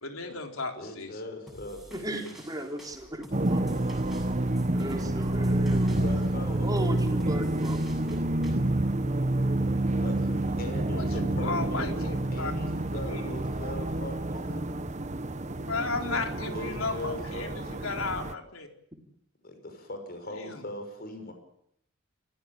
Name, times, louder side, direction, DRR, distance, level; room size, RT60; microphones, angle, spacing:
voice 1, 0.0-1.2 10.9-12.7 13.0-13.4 15.6-18.7 20.3-20.6, left 3 dB, 75° left, 4 dB, 3.9 m, -34 dB
voice 2, 0.8-2.3 5.7-7.4 10.0-14.7 16.1-16.2 16.5-18.0 19.4-21.3, left 1 dB, 45° left, 5 dB, 6.0 m, -40 dB
sound 1, 1.5-8.5, equal, ahead, 7.5 m, -51 dB
voice 3, 1.9-3.7 4.6-7.8, right 1 dB, 20° right, 3 dB, 3.9 m, -36 dB
sound 2, 3.3-18.3, right 1 dB, 35° right, 1.0 m, -28 dB
28.5 x 15.5 x 8.7 m, 0.73 s
head